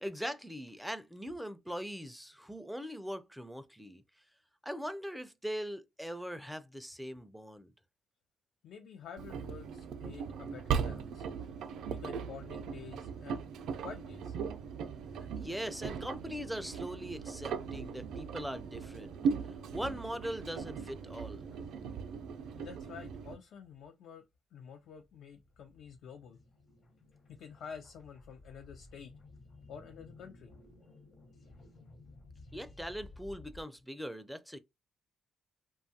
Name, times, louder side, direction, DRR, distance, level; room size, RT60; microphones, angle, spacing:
voice 1, 0.0-4.0 4.6-7.7 15.2-19.2 19.7-21.4 32.5-34.6, equal, ahead, 0.4 m, -41 dB
voice 2, 8.6-11.2 11.9-13.5 13.8-14.3 22.5-24.2 24.5-26.4 27.3-29.1 29.7-30.5, left 7 dB, 75° left, 0.4 m, -49 dB
Engine, 9.2-23.3, right 6 dB, 80° right, 0.4 m, -38 dB
sound 1, 17.6-18.4 18.7-18.8 19.0-23.9 24.3-24.4 24.8-33.6, left 2 dB, 45° left, 0.8 m, -57 dB
2.7 x 2.3 x 2.6 m
cardioid pair, 90°, 0 cm